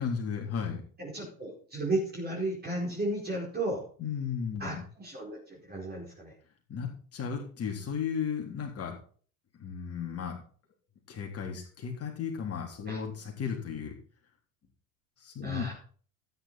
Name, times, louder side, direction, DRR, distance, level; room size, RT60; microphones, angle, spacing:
voice 1, 0.0-0.8 4.0-4.8 6.7-8.9 9.6-10.4 11.1-13.9 15.2-15.7, left 7 dB, 30° left, 0 dB, 3.6 m, -34 dB
voice 2, 1.0-3.8 4.6-6.3 12.9-13.0 15.4-15.7, right 2 dB, 20° right, -3 dB, 4.7 m, -34 dB
13.0 x 9.7 x 4.3 m, 0.43 s
figure-of-eight pair, 75°, 44 cm